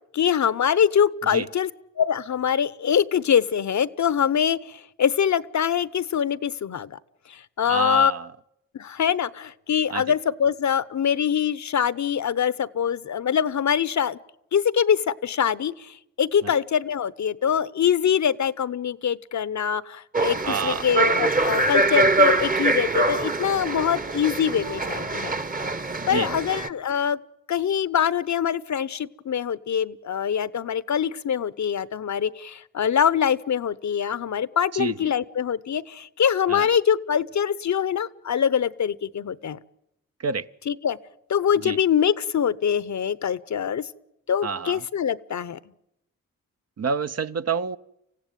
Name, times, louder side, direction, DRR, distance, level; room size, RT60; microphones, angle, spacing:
voice 1, 0.1-1.7 2.0-6.9 7.3-8.1 8.7-14.2 14.5-25.3 26.1-27.2 27.5-39.6 40.7-41.0 41.3-43.9 44.3-45.6, left 8 dB, 55° left, 19 dB, 0.8 m, -24 dB
voice 2, 7.7-8.3 9.9-10.0 16.4-16.5 20.4-20.9 26.0-26.4 34.7-35.1 36.5-36.7 40.2-40.5 41.6-41.8 44.4-44.8 46.8-47.8, right 6 dB, 50° right, 12 dB, 0.8 m, -28 dB
sound 1, 20.1-26.7, right 3 dB, 25° right, 1.1 m, -24 dB
25.5 x 16.0 x 9.2 m, 0.84 s
cardioid pair, 55°, 33 cm